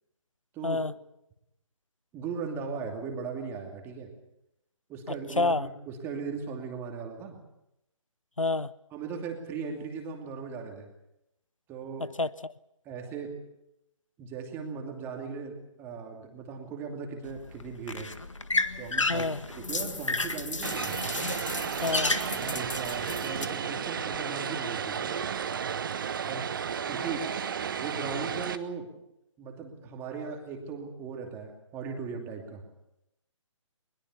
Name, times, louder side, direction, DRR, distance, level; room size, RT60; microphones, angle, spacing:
voice 1, 0.5-0.8 2.1-4.1 4.9-7.4 8.9-10.9 11.7-12.1 12.8-13.3 14.2-18.1 18.8-19.3 19.5-20.9 22.3-25.3 26.2-26.5 26.9-27.3 27.8-28.9 29.4-32.6, right 5 dB, 15° right, 2.7 m, -38 dB
voice 2, 5.4-5.7 8.4-8.7 12.2-12.5 19.1-19.4 21.8-22.1, left 3 dB, 90° left, 0.7 m, -28 dB
sound 1, 17.2-23.4, left 3 dB, 75° left, 1.8 m, -32 dB
Vehicle, 20.6-28.6, right 7 dB, 40° right, 1.2 m, -33 dB
21.5 x 21.5 x 7.0 m
figure-of-eight pair, 140°, 16 cm